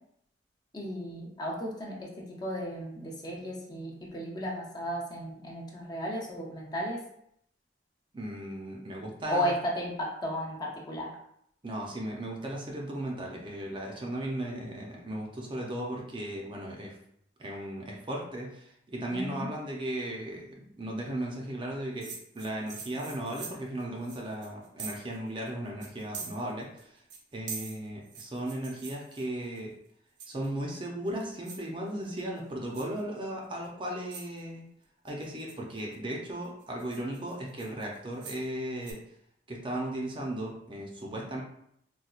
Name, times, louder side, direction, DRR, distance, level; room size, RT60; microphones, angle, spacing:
voice 1, 0.7-7.0 9.3-11.1 19.1-19.5, equal, 25° left, -3 dB, 0.6 m, -34 dB
voice 2, 8.1-9.5 11.6-16.9 17.4-27.0 27.3-29.7 30.3-34.6 35.0-39.0 39.5-41.4, right 1 dB, 25° right, -1 dB, 0.5 m, -36 dB
sound 1, 22.0-25.2 25.5-25.6 25.8-26.8 27.1-29.6 30.2-30.6 31.1-31.7 32.0-32.4 32.7-33.0 33.6-33.7 34.1-34.4 35.1-36.0 36.4-38.5 38.8-38.9, right 5 dB, 75° right, 0.7 m, -44 dB
4.2 x 2.2 x 2.4 m, 0.71 s
head